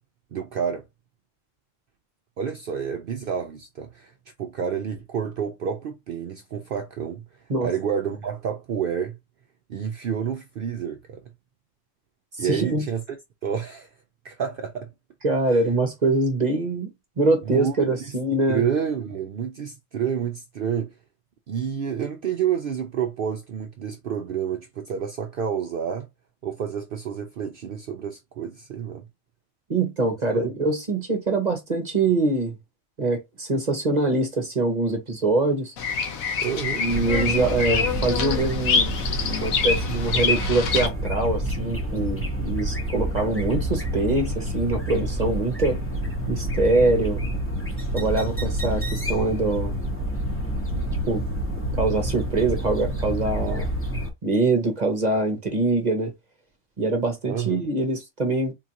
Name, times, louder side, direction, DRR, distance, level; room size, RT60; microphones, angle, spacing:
voice 1, 0.3-0.8 2.4-4.1 4.4-9.2 9.7-11.2 12.4-13.2 13.4-13.9 14.2-14.9 17.5-18.2 18.5-20.9 21.5-26.1 26.4-29.1 30.3-30.5 36.4-36.9 57.3-57.6, right 7 dB, 65° right, 0.5 m, -29 dB
voice 2, 12.4-12.9 15.2-16.9 17.2-18.6 29.7-32.5 33.0-35.7 36.8-38.9 39.2-45.8 46.3-47.2 47.9-49.7 50.7-51.2 51.7-53.7 54.2-56.1 56.8-58.5, right 2 dB, 40° right, 0.8 m, -24 dB
Bird vocalization bird call bird song, 35.8-40.9, left 5 dB, 85° left, 1.2 m, -26 dB
sound 1, 36.9-54.1, right 1 dB, 10° left, 0.7 m, -28 dB
3.8 x 2.4 x 2.8 m
omnidirectional pair, 1.4 m